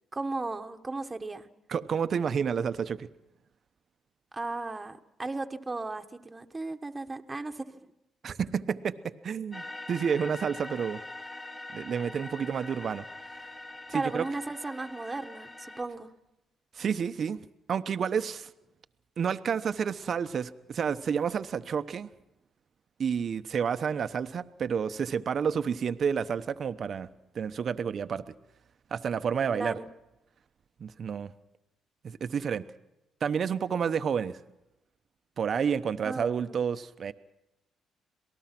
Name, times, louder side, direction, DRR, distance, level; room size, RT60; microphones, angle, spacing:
voice 1, 0.1-1.5 4.3-7.9 13.9-16.1 29.5-29.9 36.0-36.5, right 3 dB, 20° right, 5 dB, 1.4 m, -35 dB
voice 2, 1.7-3.1 8.2-11.0 11.7-13.0 13.9-14.3 16.7-18.5 19.2-22.1 23.0-27.1 27.3-28.2 28.9-29.8 30.8-31.3 32.0-32.7 33.2-34.4 35.4-37.1, right 7 dB, 55° right, 11 dB, 0.9 m, -30 dB
sound 1, 9.5-15.8, left 2 dB, 30° left, 3.6 m, -43 dB
27.0 x 18.5 x 6.0 m, 0.93 s
cardioid pair, 90°, 0 cm